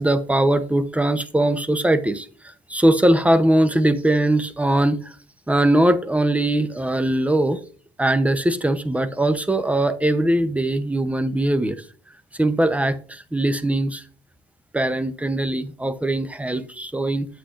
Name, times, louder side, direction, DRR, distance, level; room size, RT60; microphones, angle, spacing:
voice 1, 0.0-2.3 2.7-5.0 5.5-7.6 8.0-11.8 12.4-14.0 14.7-17.3, right 1 dB, 5° right, 0.7 m, -20 dB
8.4 x 8.0 x 2.5 m
cardioid pair, 90°, 20 cm